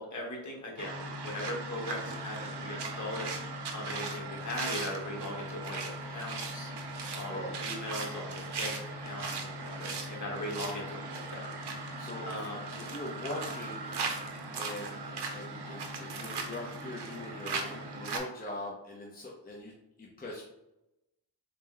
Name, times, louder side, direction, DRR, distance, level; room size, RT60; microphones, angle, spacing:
voice 1, 0.0-3.3 3.7-11.5 12.2-12.6, left 1 dB, 45° left, -1 dB, 1.2 m, -39 dB
sound 1, 0.8-18.2, right 3 dB, 75° right, 0.7 m, -38 dB
voice 2, 7.3-7.6 12.0-12.4 12.8-13.9 14.6-19.7 20.0-20.4, left 1 dB, 20° left, -3 dB, 0.7 m, -42 dB
4.0 x 2.2 x 3.7 m, 0.90 s
wide cardioid pair, 80°, 41 cm